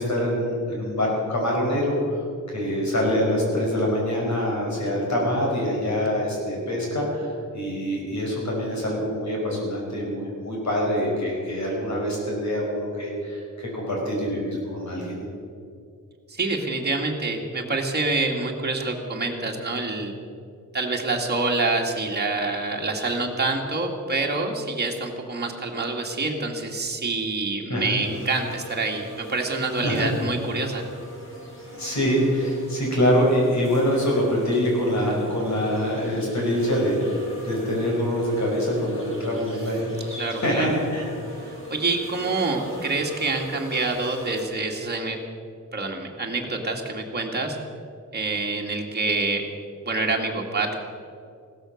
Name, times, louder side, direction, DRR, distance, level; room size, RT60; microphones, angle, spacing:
voice 1, 0.0-2.2 2.5-15.2 27.7-28.0 29.8-30.1 31.8-40.0 40.4-41.1, equal, 55° left, -2 dB, 5.4 m, -25 dB
voice 2, 16.3-20.1 20.7-30.9 40.2-40.7 41.4-45.2 45.7-47.6 48.1-49.4 49.9-50.8, right 3 dB, 30° right, 0 dB, 2.0 m, -26 dB
sound 1, 28.0-44.4, equal, 40° left, 4.7 m, -40 dB
16.5 x 13.0 x 6.4 m, 2.4 s
wide cardioid pair, 160°, 33 cm